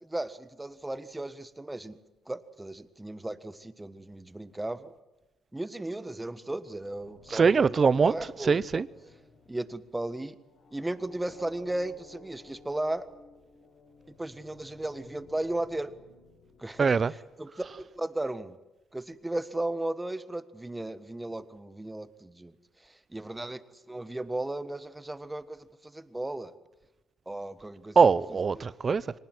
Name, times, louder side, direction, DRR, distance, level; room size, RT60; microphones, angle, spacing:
voice 1, 0.0-2.0 2.3-4.9 5.5-8.8 9.5-10.4 10.7-13.1 14.1-15.9 16.6-18.6 18.9-22.5 22.8-26.5 27.2-28.0 28.5-28.7, right 1 dB, 10° right, 1.5 m, -35 dB
sound 1, 6.4-17.5, left 4 dB, 70° left, 5.9 m, -57 dB
voice 2, 7.3-8.1 8.4-8.9 16.8-17.1 28.0-29.2, right 5 dB, 40° right, 0.8 m, -22 dB
24.0 x 19.0 x 9.7 m
cardioid pair, 90°, 0 cm